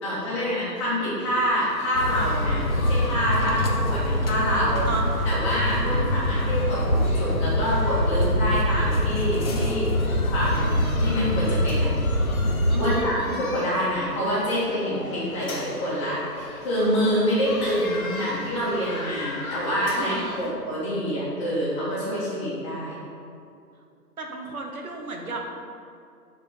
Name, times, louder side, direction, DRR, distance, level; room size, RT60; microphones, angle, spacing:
voice 1, 0.0-4.9 5.3-9.9 10.3-11.9 12.8-13.2 13.5-23.0, equal, 20° left, -10 dB, 1.7 m, -26 dB
sound 1, 1.2-20.5, left 2 dB, 55° left, 1.2 m, -39 dB
sound 2, 1.9-12.9, left 1 dB, 40° left, 0.5 m, -24 dB
voice 2, 2.1-2.7 3.4-3.8 4.8-5.3 5.6-6.1 12.7-13.3 19.9-20.5 24.2-25.4, right 3 dB, 60° right, 1 dB, 1.2 m, -35 dB
5.4 x 5.2 x 4.9 m, 2.4 s
figure-of-eight pair, 150°, 49 cm